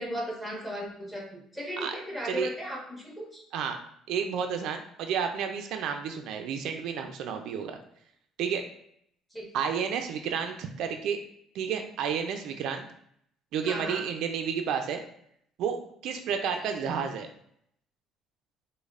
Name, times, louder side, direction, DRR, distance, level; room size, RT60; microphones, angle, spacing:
voice 1, 0.0-3.4 9.3-9.4 13.6-14.0 16.8-16.9, equal, 10° left, -4 dB, 1.2 m, -36 dB
voice 2, 4.1-7.8 8.4-8.7 9.5-11.2 11.5-12.9 13.5-15.0 15.6-17.3, right 7 dB, 70° right, 5 dB, 0.3 m, -31 dB
5.1 x 2.1 x 2.4 m, 0.69 s
cardioid pair, 115°, 0 cm